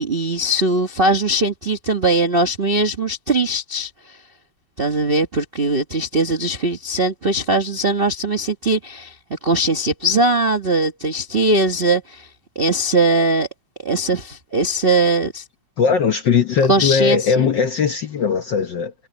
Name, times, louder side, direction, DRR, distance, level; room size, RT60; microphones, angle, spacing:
voice 1, 0.0-4.2 4.8-12.3 12.5-13.5 13.8-15.4 16.7-17.5, right 2 dB, 80° right, 0.5 m, -20 dB
voice 2, 15.8-18.9, left 6 dB, 65° left, 1.1 m, -19 dB
omnidirectional pair, 3.3 m